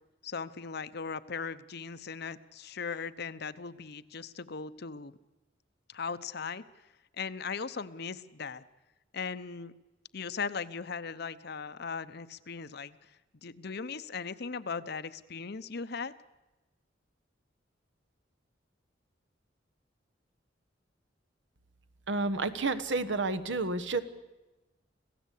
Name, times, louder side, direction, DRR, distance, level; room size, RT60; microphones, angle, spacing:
voice 1, 0.2-5.1 5.9-6.9 7.2-8.6 9.1-9.7 10.1-13.1 13.4-16.1, left 5 dB, 60° left, 13 dB, 0.9 m, -38 dB
voice 2, 22.1-24.0, right 3 dB, 70° right, 11 dB, 1.3 m, -30 dB
26.5 x 16.0 x 8.4 m, 1.1 s
head